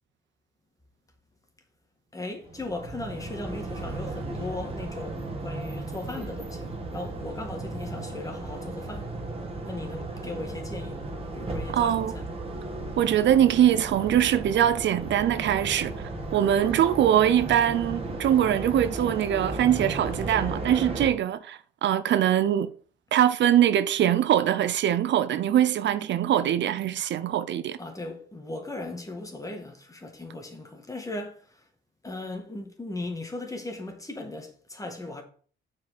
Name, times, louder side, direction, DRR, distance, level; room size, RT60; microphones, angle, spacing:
voice 1, 2.1-9.1 9.6-12.2 27.8-31.6 32.0-35.2, left 2 dB, 15° left, 2.1 m, -37 dB
sound 1, 2.4-21.1, right 2 dB, 30° right, 2.0 m, -35 dB
voice 2, 11.7-12.1 13.0-15.9 16.3-22.7 23.1-27.8, right 10 dB, 65° right, 0.6 m, -22 dB
6.1 x 5.0 x 5.9 m
cardioid pair, 90°, 20 cm